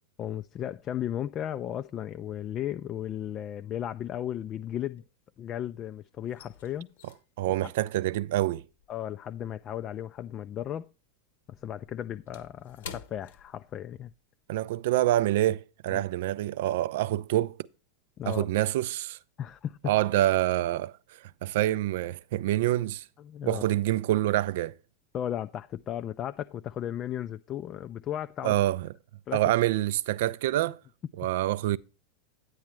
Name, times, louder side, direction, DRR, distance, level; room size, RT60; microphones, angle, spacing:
voice 1, 0.2-5.0 5.4-6.9 7.5-7.7 8.9-10.9 11.6-14.1 15.9-16.0 18.2-18.5 19.4-19.9 23.2-23.6 25.1-28.5 29.3-29.4, left 10 dB, 30° left, 0.3 m, -35 dB
sound 1, 4.9-5.6 5.9-10.6 10.9-14.2 14.5-14.7 15.2-15.4, left 7 dB, 60° left, 0.9 m, -50 dB
voice 2, 7.4-8.6 14.5-17.6 18.3-19.2 19.9-23.0 23.4-24.7 28.4-28.9 29.3-30.8 31.2-31.8, right 14 dB, 55° right, 0.4 m, -26 dB
9.6 x 9.1 x 3.1 m
figure-of-eight pair, 90°, 0 cm